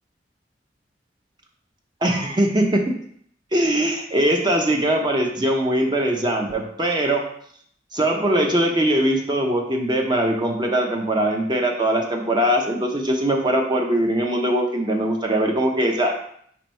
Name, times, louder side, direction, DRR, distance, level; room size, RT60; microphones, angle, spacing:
voice 1, 2.0-2.9 3.5-7.2 7.9-16.1, right 1 dB, 25° right, 1 dB, 0.6 m, -21 dB
4.3 x 2.6 x 4.3 m, 0.65 s
head